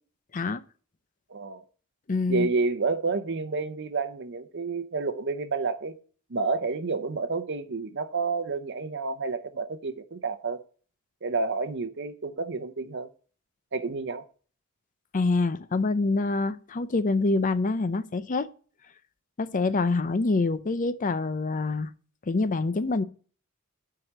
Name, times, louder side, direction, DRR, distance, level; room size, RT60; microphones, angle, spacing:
voice 1, 1.3-1.6 2.3-6.0 6.3-10.6 11.2-13.1 13.7-14.3, right 4 dB, 60° right, 0.8 m, -29 dB
voice 2, 2.1-2.5 15.1-18.5 19.4-21.9 22.3-23.0, left 3 dB, 40° left, 0.6 m, -26 dB
7.7 x 4.9 x 7.3 m
head